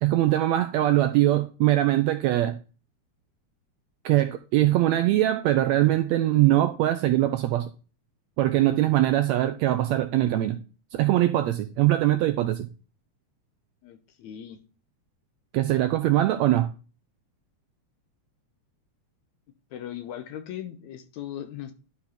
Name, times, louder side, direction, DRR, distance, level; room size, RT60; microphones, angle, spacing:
voice 1, 0.0-2.5 4.0-7.6 8.4-10.6 10.9-12.7 15.5-16.7, right 14 dB, 80° right, 1.6 m, -22 dB
voice 2, 13.8-14.6 19.7-21.7, left 11 dB, 75° left, 2.0 m, -38 dB
11.5 x 4.1 x 4.3 m
omnidirectional pair, 3.5 m